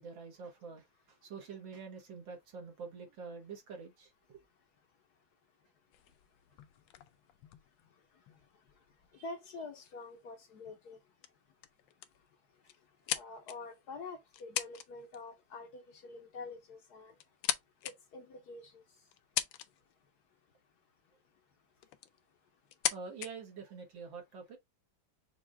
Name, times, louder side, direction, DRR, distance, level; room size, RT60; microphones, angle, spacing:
voice 1, 0.0-4.4 9.1-9.2 22.9-24.6, right 5 dB, 70° right, 2.1 m, -47 dB
sound 1, 5.9-8.5 9.4-9.5 9.8-10.1 10.7-11.0 11.2-11.3 11.6-12.2 12.7-13.8 14.3-14.9 15.1-15.4 16.5-16.6 17.1-17.9 18.5-18.6 19.1-19.9 21.3-21.4 21.8-22.2 22.7-23.3, left 12 dB, 80° left, 1.3 m, -38 dB
voice 2, 9.2-11.0 13.1-17.1 17.8-18.8, left 3 dB, 60° left, 1.2 m, -46 dB
5.9 x 2.5 x 3.4 m
omnidirectional pair, 2.1 m